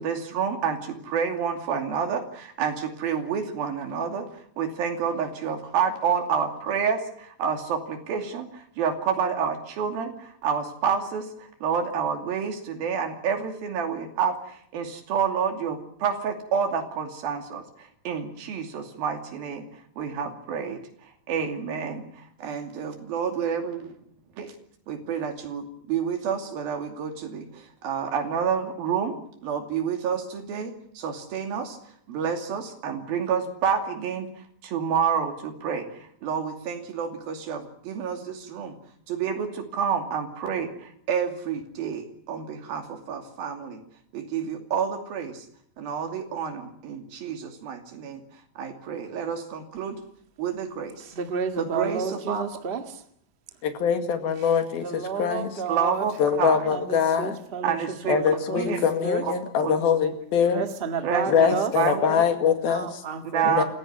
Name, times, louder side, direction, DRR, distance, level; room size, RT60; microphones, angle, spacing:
voice 1, 0.0-23.9 24.4-24.5 24.9-31.8 32.1-38.7 39.1-43.8 44.1-45.5 45.8-50.0 50.4-51.1 51.6-52.5 55.7-56.7 57.6-58.2 58.6-58.8 59.2-59.3 59.6-59.8 61.0-62.1 63.3-63.6, right 7 dB, 80° right, 4 dB, 4.5 m, -29 dB
voice 2, 51.1-53.0 54.8-56.1 56.7-57.8 58.0-58.7 59.0-59.2 60.5-61.7 62.6-63.6, right 5 dB, 25° right, 6 dB, 1.1 m, -31 dB
voice 3, 53.6-55.6 56.2-57.4 58.1-60.6 61.3-63.0 63.4-63.6, left 7 dB, 85° left, 7 dB, 4.0 m, -23 dB
27.5 x 15.5 x 9.5 m, 0.65 s
omnidirectional pair, 4.2 m